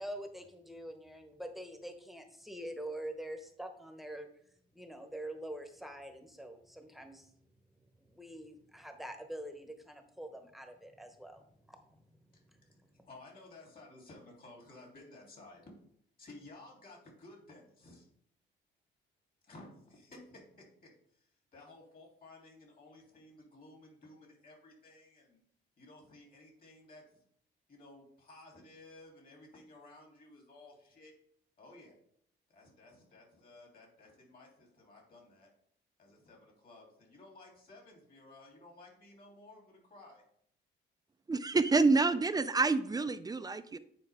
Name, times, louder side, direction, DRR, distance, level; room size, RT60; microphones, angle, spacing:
voice 1, 0.0-4.3 4.7-7.3 8.1-12.8, right 1 dB, ahead, 6 dB, 1.0 m, -45 dB
voice 2, 12.3-12.7 13.1-15.7 16.2-18.1 19.4-25.4 25.8-27.2 27.7-31.1 31.6-31.9 32.5-35.5 36.0-40.2, left 2 dB, 45° left, 0 dB, 3.1 m, -55 dB
voice 3, 41.3-43.8, right 3 dB, 20° right, 12 dB, 0.4 m, -28 dB
9.3 x 4.5 x 3.5 m, 0.66 s
cardioid pair, 90°, 20 cm